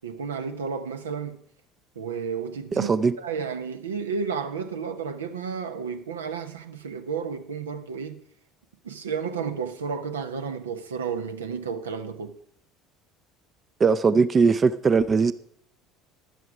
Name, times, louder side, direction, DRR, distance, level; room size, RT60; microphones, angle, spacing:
voice 1, 0.0-1.4 2.0-2.9 3.2-8.2 8.8-12.4, right 6 dB, 90° right, 0.8 m, -32 dB
voice 2, 2.8-3.2 13.8-15.3, right 5 dB, 35° right, 0.5 m, -20 dB
11.0 x 9.4 x 4.9 m
hypercardioid pair, 70°, 0 cm